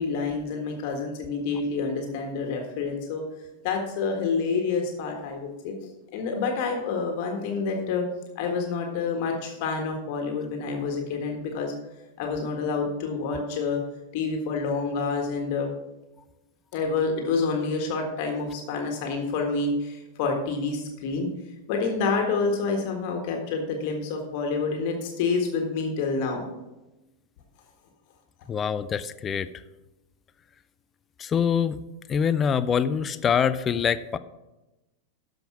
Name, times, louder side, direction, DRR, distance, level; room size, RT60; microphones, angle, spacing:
voice 1, 0.0-3.2 3.6-5.7 6.1-8.0 8.3-11.7 12.2-13.8 14.1-15.7 16.7-21.3 21.7-26.4, left 4 dB, 45° left, 2 dB, 1.6 m, -28 dB
voice 2, 28.5-29.5 31.2-31.8 32.1-34.2, left 7 dB, 25° left, 14 dB, 0.4 m, -24 dB
13.0 x 5.2 x 5.9 m, 1.0 s
figure-of-eight pair, 90°, 0 cm